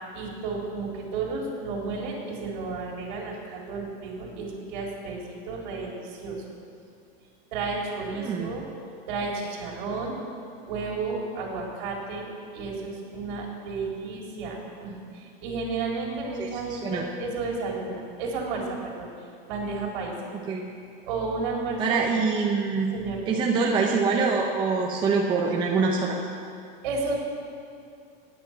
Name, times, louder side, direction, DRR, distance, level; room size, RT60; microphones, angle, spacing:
voice 1, 0.1-6.5 7.5-8.7 9.1-10.2 10.6-12.3 12.5-19.1 19.5-20.1 21.0-22.4 22.9-23.4 26.8-27.2, right 3 dB, 55° right, -1 dB, 3.9 m, -32 dB
voice 2, 8.2-8.5 16.4-17.0 20.5-20.6 21.8-22.9 23.3-26.2, right 4 dB, 15° right, -1 dB, 0.8 m, -25 dB
18.0 x 9.7 x 6.1 m, 2.4 s
supercardioid pair, 175°, 29 cm